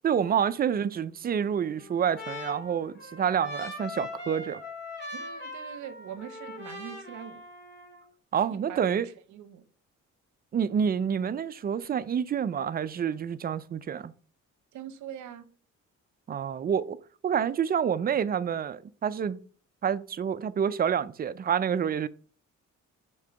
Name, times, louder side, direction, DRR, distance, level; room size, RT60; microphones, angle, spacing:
voice 1, 0.0-4.6 8.3-9.1 10.5-14.1 16.3-17.0 17.2-19.4 19.8-22.1, right 8 dB, 30° right, 0.4 m, -28 dB
Trumpet, 1.3-8.1, left 2 dB, 35° left, 2.6 m, -41 dB
voice 2, 5.1-7.4 8.5-9.6 14.7-15.5, right 9 dB, 70° right, 0.8 m, -43 dB
5.4 x 3.8 x 4.9 m
cardioid pair, 90°, 30 cm